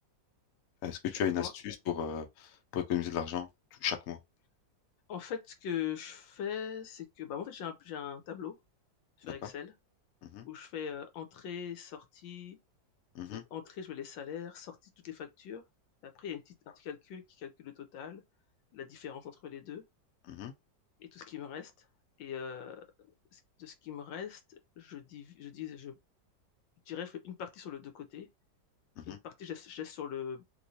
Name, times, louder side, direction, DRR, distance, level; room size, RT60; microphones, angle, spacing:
voice 1, 0.8-4.2 9.2-9.5 10.2-10.5 13.1-13.4 20.3-20.5 29.0-29.2, left 9 dB, 60° left, 0.9 m, -35 dB
voice 2, 5.1-8.6 9.3-9.7 10.4-12.6 13.3-14.8 15.0-15.6 16.0-18.2 18.7-19.8 21.1-21.7 22.2-22.8 23.3-25.9 26.9-28.3 29.1-30.4, left 8 dB, 85° left, 1.4 m, -41 dB
3.0 x 3.0 x 2.6 m
omnidirectional pair, 2.0 m